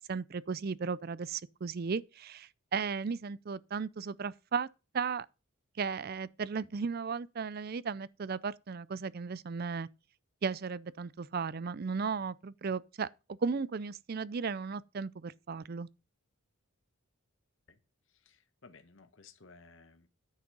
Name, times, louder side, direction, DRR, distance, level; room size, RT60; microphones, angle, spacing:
voice 1, 0.1-4.7 4.9-5.3 5.8-9.9 10.4-15.9, right 5 dB, 45° right, 0.4 m, -35 dB
voice 2, 18.1-20.1, left 4 dB, 60° left, 1.1 m, -58 dB
9.8 x 6.1 x 5.3 m
head